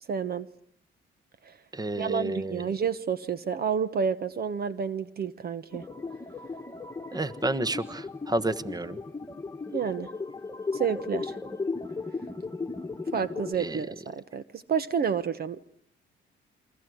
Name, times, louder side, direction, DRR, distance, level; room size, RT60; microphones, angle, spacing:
voice 1, 0.1-0.5 1.4-1.5 2.0-5.8 9.7-10.1 10.7-11.4 13.1-15.7, right 7 dB, 50° right, 14 dB, 1.2 m, -30 dB
voice 2, 1.7-2.6 7.1-9.0 13.6-13.8, right 2 dB, 20° right, 14 dB, 1.4 m, -30 dB
sound 1, 5.7-13.6, left 3 dB, 15° left, 1.6 m, -36 dB
29.0 x 23.5 x 8.0 m, 0.64 s
cardioid pair, 90°, 20 cm